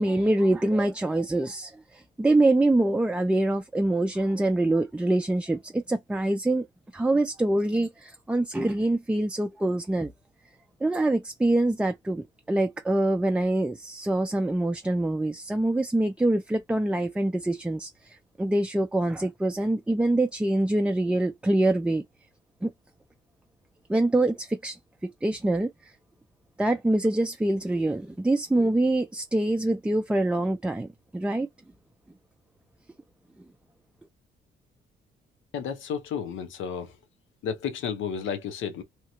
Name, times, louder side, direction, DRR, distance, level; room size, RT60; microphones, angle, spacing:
voice 1, 0.0-6.7 6.9-10.1 10.8-22.0 22.6-22.7 23.9-25.9 26.6-31.5, right 1 dB, 5° right, 0.3 m, -25 dB
voice 2, 35.5-36.9 37.4-38.8, left 7 dB, 80° left, 0.8 m, -32 dB
2.9 x 2.2 x 2.9 m
cardioid pair, 90°, 20 cm